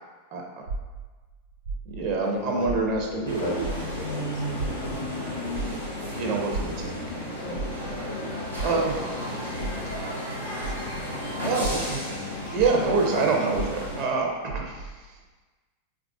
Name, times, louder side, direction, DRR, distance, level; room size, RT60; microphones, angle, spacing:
voice 1, 0.3-0.6 1.9-3.7 6.2-8.0 8.3-9.0 9.9-10.0 11.4-12.1 12.5-15.1, right 4 dB, 45° right, 0 dB, 0.6 m, -27 dB
sound 1, 0.7-3.3 3.6-11.1 11.5-15.0, right 3 dB, 70° right, 1.2 m, -36 dB
voice 2, 2.2-2.8 3.1-4.5 8.7-10.0 10.7-11.0 12.0-12.6 13.1-13.7, left 6 dB, 35° left, 5 dB, 0.4 m, -38 dB
sound 2, 3.2-14.0, left 1 dB, 85° right, 0.7 m, -33 dB
3.3 x 2.5 x 3.6 m, 1.3 s
figure-of-eight pair, 90°, 0 cm